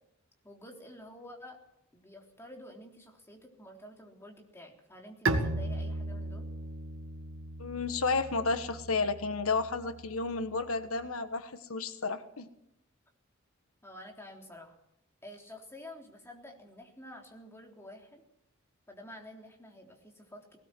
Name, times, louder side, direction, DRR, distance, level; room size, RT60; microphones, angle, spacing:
voice 1, 0.4-1.6 1.9-6.5 13.8-14.8 15.2-18.2 18.9-20.6, left 1 dB, 10° left, 1 dB, 3.5 m, -49 dB
Bowed string instrument, 5.2-10.8, right 2 dB, 65° right, 2.1 m, -36 dB
voice 2, 7.6-12.5, left 4 dB, 85° left, 9 dB, 1.4 m, -32 dB
19.5 x 18.5 x 7.7 m, 0.80 s
head